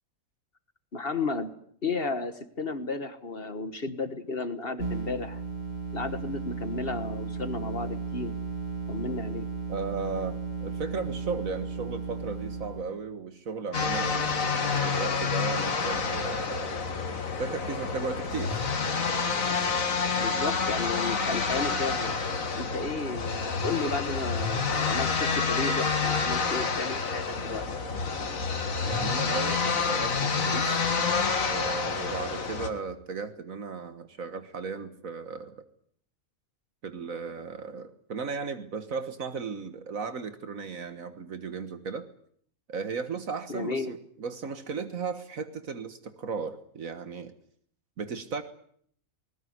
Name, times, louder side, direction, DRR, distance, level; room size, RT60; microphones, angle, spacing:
voice 1, 0.9-1.5 1.8-5.4 5.9-8.3 8.9-9.5 20.2-22.2 22.5-27.6 43.5-43.9, left 3 dB, 45° left, 11 dB, 1.7 m, -33 dB
sound 1, 4.8-12.8, right 3 dB, 30° right, 3.5 m, -35 dB
voice 2, 9.7-16.7 17.4-18.6 28.8-30.9 31.5-35.6 36.8-42.1 42.7-47.3 48.0-48.4, right 5 dB, 75° right, 10 dB, 1.9 m, -36 dB
sound 2, 13.7-32.7, left 5 dB, 70° left, 2.3 m, -28 dB
20.5 x 19.5 x 9.5 m, 0.63 s
omnidirectional pair, 1.4 m